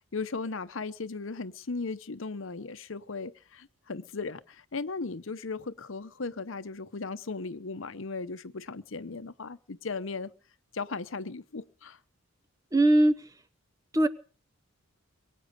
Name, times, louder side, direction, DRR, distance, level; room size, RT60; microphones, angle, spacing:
voice 1, 0.1-10.3 10.7-12.0, left 4 dB, 65° left, 0.8 m, -37 dB
voice 2, 12.7-13.2 13.9-14.1, right 1 dB, 15° right, 0.9 m, -20 dB
23.0 x 9.3 x 6.7 m
head